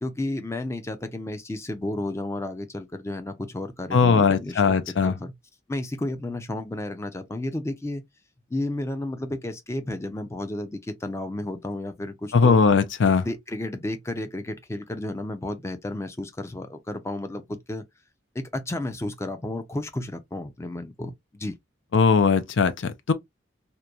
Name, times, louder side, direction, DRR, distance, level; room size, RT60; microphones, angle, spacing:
voice 1, 0.0-4.8 5.0-5.3 5.7-8.0 8.5-12.6 13.2-17.8 18.3-21.5, left 1 dB, 15° left, 0.4 m, -32 dB
voice 2, 3.9-5.2 12.3-13.3 21.9-23.1, left 5 dB, 80° left, 0.4 m, -19 dB
2.9 x 2.1 x 2.3 m
head